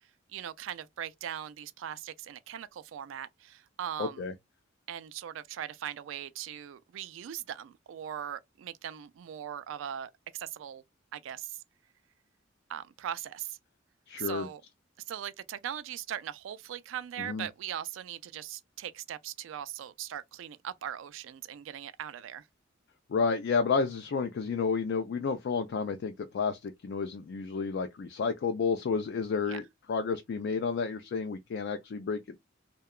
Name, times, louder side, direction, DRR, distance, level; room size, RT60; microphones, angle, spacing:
voice 1, 0.3-4.3 4.9-10.8 11.1-11.6 12.7-13.6 14.2-14.6 15.1-22.5 29.5-29.6, right 10 dB, 75° right, 0.3 m, -40 dB
voice 2, 4.0-4.3 14.1-14.5 17.3-17.5 23.1-32.4, left 5 dB, 60° left, 0.3 m, -31 dB
2.8 x 2.2 x 2.2 m
head